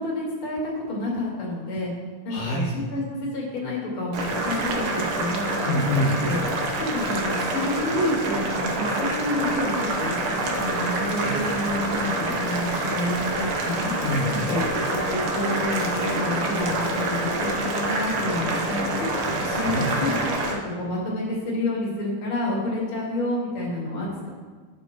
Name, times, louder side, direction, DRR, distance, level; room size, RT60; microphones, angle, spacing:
voice 1, 0.0-1.9 2.2-5.9 6.2-6.4 6.9-10.2 10.6-13.9 14.5-19.0 19.6-20.2 20.5-24.3, left 1 dB, 40° left, -5 dB, 3.0 m, -29 dB
sound 1, 0.6-0.7 1.2-1.3 1.8-1.9 2.4-2.5 3.0-3.1 3.6-3.7 4.2-4.3 4.8-4.9 5.4-5.5 6.0-6.1 6.6-6.7 7.2-7.3, right 10 dB, 90° right, 2.2 m, -40 dB
voice 2, 2.3-2.6 5.6-6.2 11.0-11.4 14.0-14.4 19.2-19.9, left 1 dB, 80° left, -3 dB, 3.0 m, -27 dB
Boiling, 4.1-20.5, right 2 dB, 65° right, 1.3 m, -27 dB
9.9 x 6.0 x 4.3 m, 1.5 s
omnidirectional pair, 3.7 m